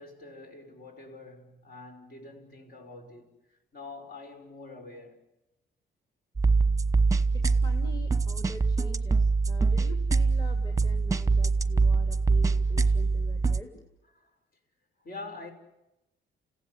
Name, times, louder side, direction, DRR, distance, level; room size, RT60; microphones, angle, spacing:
voice 1, 0.0-5.2 14.1-14.4 15.0-15.5, left 3 dB, 50° left, 5.8 m, -45 dB
sound 1, 6.4-13.6, right 4 dB, 15° right, 1.1 m, -24 dB
voice 2, 7.3-13.8, left 2 dB, 20° left, 3.1 m, -45 dB
29.0 x 16.5 x 10.0 m
cardioid pair, 90°, 20 cm